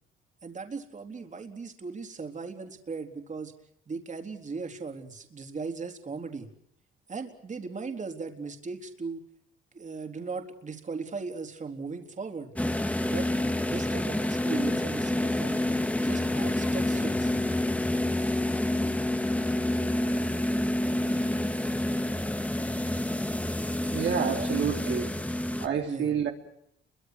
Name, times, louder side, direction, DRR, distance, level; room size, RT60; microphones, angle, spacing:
voice 1, 0.4-3.5 3.9-6.5 7.1-9.2 9.7-12.5 13.1-13.4 13.7-15.6 16.0-17.3 24.3-24.5 25.8-26.1, right 4 dB, 40° right, 5 dB, 4.0 m, -37 dB
sound 1, 12.5-25.7, left 1 dB, 5° left, 2.0 m, -28 dB
voice 2, 23.9-25.1 25.6-26.3, right 8 dB, 70° right, 3 dB, 3.4 m, -28 dB
30.0 x 24.0 x 6.4 m, 0.74 s
cardioid pair, 90°, 20 cm